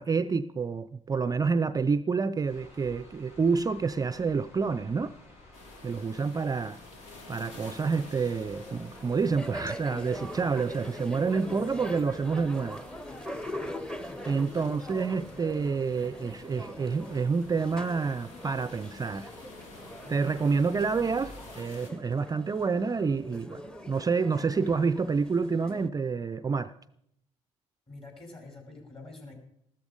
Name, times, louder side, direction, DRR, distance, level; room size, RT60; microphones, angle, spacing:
voice 1, 0.0-5.1 5.8-6.8 7.3-12.8 14.2-19.3 20.1-23.6 23.9-26.7, right 5 dB, 20° right, 0.4 m, -28 dB
sound 1, 2.5-21.5, left 2 dB, 60° left, 7.0 m, -54 dB
sound 2, 5.5-21.9, left 3 dB, 80° left, 1.6 m, -52 dB
sound 3, 8.4-25.9, equal, 5° left, 0.9 m, -42 dB
voice 2, 14.5-15.5 27.9-29.3, left 2 dB, 35° left, 5.0 m, -47 dB
13.5 x 13.0 x 5.2 m
figure-of-eight pair, 50°, 17 cm